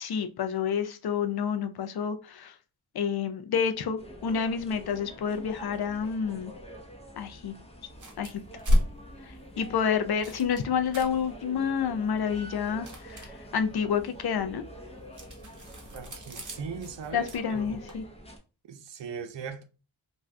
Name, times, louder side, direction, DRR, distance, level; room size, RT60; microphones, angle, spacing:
voice 1, 0.0-2.6 2.9-6.5 7.2-7.5 8.2-8.4 9.2-14.6 17.1-18.0, left 7 dB, 50° left, 0.5 m, -29 dB
sound 1, 4.0-18.4, equal, 15° left, 0.6 m, -46 dB
sound 2, 7.9-18.0, equal, 40° right, 0.9 m, -35 dB
voice 2, 15.9-17.8 18.7-19.6, right 6 dB, 60° right, 0.6 m, -39 dB
2.6 x 2.3 x 3.2 m
wide cardioid pair, 65°, 49 cm